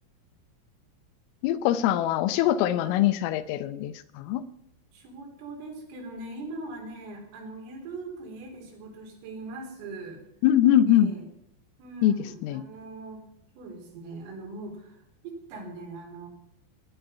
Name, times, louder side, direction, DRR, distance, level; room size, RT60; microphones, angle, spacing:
voice 1, 1.4-4.4 10.4-11.1 12.0-12.2 12.4-12.6, left 11 dB, 90° left, 14 dB, 3.5 m, -23 dB
voice 2, 4.9-10.2 10.9-11.3 11.8-13.3 13.6-16.3, right 2 dB, 80° right, 1 dB, 6.2 m, -41 dB
20.5 x 10.5 x 5.7 m, 0.77 s
omnidirectional pair, 5.7 m